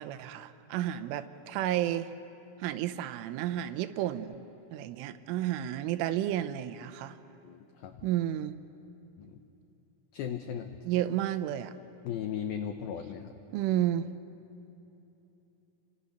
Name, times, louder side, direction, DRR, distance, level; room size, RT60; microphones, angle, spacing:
voice 1, 0.0-2.1 2.6-4.4 4.7-7.2 8.0-8.6 10.8-11.8 13.5-14.1, right 12 dB, 85° right, 11 dB, 3.3 m, -31 dB
voice 2, 7.4-8.1 9.2-9.4 10.1-10.8 12.0-13.3, left 8 dB, 90° left, 7 dB, 2.1 m, -37 dB
28.0 x 25.5 x 6.6 m, 2.9 s
omnidirectional pair, 5.5 m